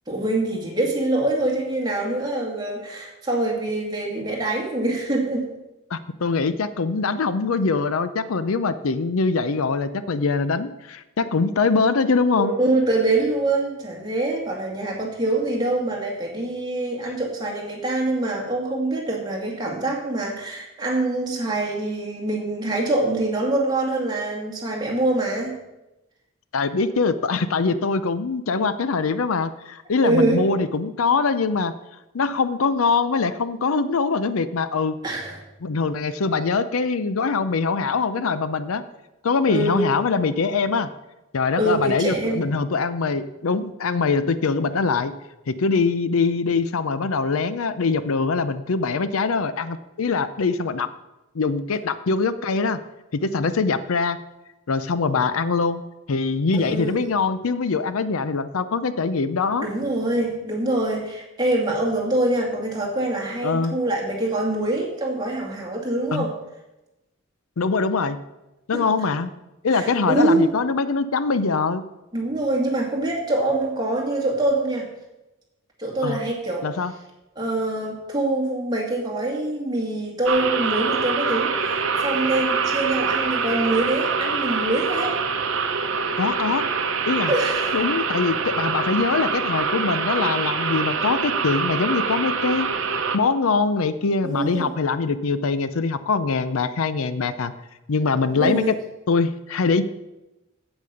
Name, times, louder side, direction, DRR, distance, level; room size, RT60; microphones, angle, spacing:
voice 1, 0.1-5.5 12.4-25.6 30.0-30.4 35.0-35.4 36.2-36.4 39.5-39.9 41.6-42.4 56.5-57.0 59.6-66.3 68.7-68.8 69.7-70.5 72.1-74.9 75.8-76.7 77.4-85.2 87.3-87.8 94.2-94.7 98.3-98.7, right 2 dB, 20° right, -2 dB, 2.1 m, -24 dB
voice 2, 5.9-12.5 26.5-31.7 32.1-34.9 35.6-38.8 39.2-40.9 41.3-45.1 45.5-50.9 51.3-52.8 53.1-54.2 54.7-55.8 56.1-59.7 63.4-63.8 66.1-66.3 67.6-68.2 68.7-69.3 69.6-71.8 76.0-76.2 76.6-76.9 86.2-86.6 87.1-87.3 87.7-92.7 93.1-97.5 97.9-98.8 99.1-99.8, left 4 dB, 75° left, 13 dB, 0.5 m, -23 dB
sound 1, 80.3-93.2, right 5 dB, 60° right, 0.9 m, -25 dB
8.4 x 8.1 x 6.8 m, 0.98 s
head